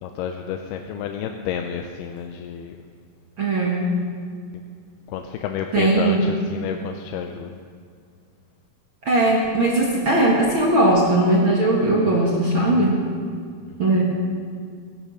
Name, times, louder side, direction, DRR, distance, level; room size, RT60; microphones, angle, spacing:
voice 1, 0.0-2.8 5.1-7.5 13.8-13.9, left 8 dB, 85° left, 5 dB, 2.6 m, -30 dB
voice 2, 3.4-3.8 5.7-6.2 9.0-13.0 13.8-14.0, right 2 dB, 50° right, -3 dB, 1.5 m, -19 dB
16.0 x 11.5 x 6.3 m, 2.1 s
omnidirectional pair, 4.6 m